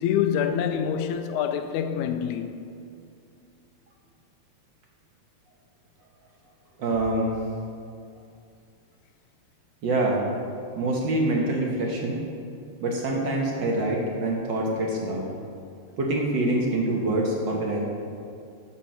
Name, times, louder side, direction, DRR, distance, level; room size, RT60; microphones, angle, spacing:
voice 1, 0.0-2.6, left 8 dB, 90° left, 2.0 m, -26 dB
voice 2, 6.8-7.3 9.8-10.2 10.7-12.2 12.8-15.3 16.0-17.8, right 2 dB, 60° right, 1.3 m, -25 dB
11.5 x 4.3 x 6.2 m
omnidirectional pair, 3.3 m